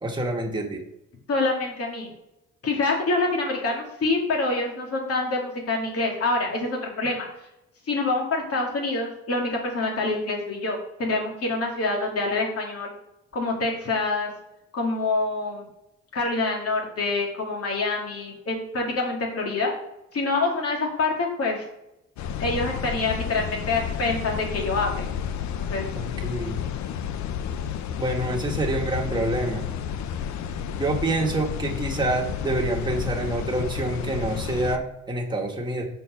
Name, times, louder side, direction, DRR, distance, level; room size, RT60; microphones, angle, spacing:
voice 1, 0.0-0.8 26.0-26.6 28.0-29.7 30.8-35.9, right 2 dB, 15° right, 0 dB, 1.7 m, -27 dB
voice 2, 1.3-2.1 2.6-7.3 7.9-12.9 13.3-14.3 14.7-15.7 16.1-19.7 20.1-21.6 22.4-25.1 25.6-25.9, left 3 dB, 50° left, 0 dB, 2.3 m, -26 dB
sound 1, 22.2-34.8, left 8 dB, 65° left, 0.6 m, -31 dB
5.4 x 4.6 x 6.3 m, 0.85 s
cardioid pair, 90°, 30 cm